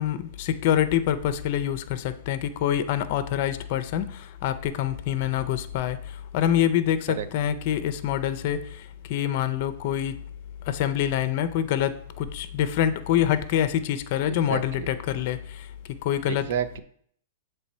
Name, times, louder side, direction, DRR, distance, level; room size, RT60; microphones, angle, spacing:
voice 1, 0.0-6.0 6.3-10.2 10.7-15.7 16.0-16.5, left 10 dB, 45° left, 12 dB, 0.5 m, -26 dB
voice 2, 14.3-14.9 16.3-16.8, right 8 dB, 60° right, 11 dB, 0.6 m, -30 dB
7.2 x 3.3 x 4.3 m, 0.62 s
hypercardioid pair, 150°, 0 cm